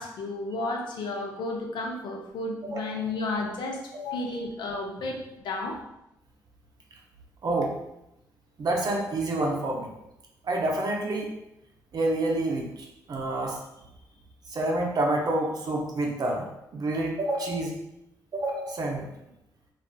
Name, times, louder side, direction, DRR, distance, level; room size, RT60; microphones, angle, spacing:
voice 1, 0.0-5.8, left 2 dB, 65° left, 0 dB, 0.5 m, -32 dB
voice 2, 7.4-7.7 8.6-9.9 10.4-11.3 11.9-13.6 14.5-16.4 16.7-17.7 18.3-19.1, right 2 dB, 50° right, 0 dB, 0.6 m, -28 dB
2.5 x 2.3 x 2.3 m, 0.87 s
supercardioid pair, 50°, 8 cm